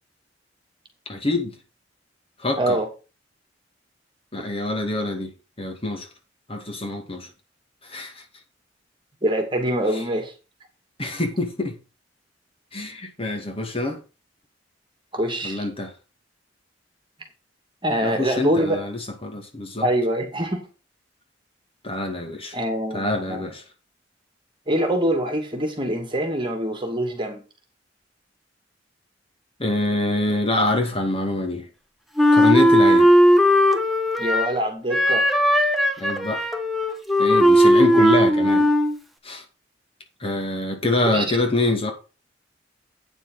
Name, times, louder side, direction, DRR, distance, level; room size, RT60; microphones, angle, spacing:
voice 1, 1.1-1.5 2.4-2.8 4.3-6.1 6.5-7.3 7.8-8.2 9.9-10.0 11.0-11.8 12.7-14.0 15.4-15.9 18.0-19.9 21.8-22.6 22.9-23.6 29.6-31.7 32.3-33.2 36.0-36.4 37.2-38.7 39.2-39.4 40.2-41.9, left 2 dB, 30° left, 2.3 m, -25 dB
voice 2, 2.6-2.9 9.2-10.3 15.1-15.6 17.8-18.8 19.8-20.7 22.5-23.5 24.7-27.4 34.2-35.3 41.0-41.2, right 1 dB, 25° right, 2.6 m, -24 dB
Wind instrument woodwind instrument, 32.2-34.6 34.9-39.0, equal, ahead, 1.2 m, -17 dB
9.3 x 6.7 x 5.0 m
head